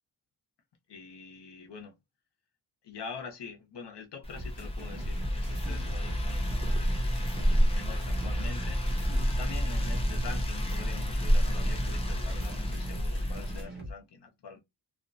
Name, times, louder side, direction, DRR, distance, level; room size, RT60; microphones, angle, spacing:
voice 1, 0.9-1.9 2.8-8.9 9.4-14.6, left 5 dB, 65° left, 0.8 m, -45 dB
sound 1, 4.2-13.6, equal, 15° left, 0.5 m, -29 dB
sound 2, 4.4-13.9, equal, 25° right, 1.0 m, -42 dB
2.4 x 2.1 x 2.5 m
wide cardioid pair, 110°, 43 cm